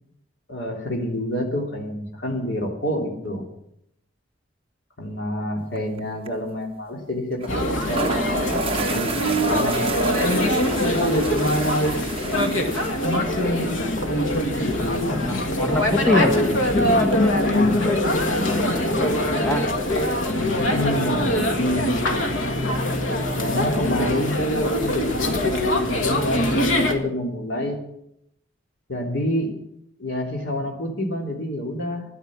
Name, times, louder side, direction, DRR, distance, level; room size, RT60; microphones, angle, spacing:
voice 1, 0.5-3.4 5.0-9.9 14.6-15.2 20.6-22.1 23.4-27.8 28.9-29.5 30.0-32.0, left 1 dB, 70° left, 1 dB, 2.9 m, -28 dB
sound 1, 5.8-6.0 6.3-6.4 7.4-7.5 7.8-17.2, right 3 dB, 30° right, 0.8 m, -33 dB
sound 2, 7.5-26.9, left 1 dB, 85° left, 1.9 m, -22 dB
voice 2, 15.1-19.7 20.3-20.5, left 1 dB, 5° left, 5 dB, 1.0 m, -27 dB
13.0 x 11.0 x 7.5 m, 0.76 s
head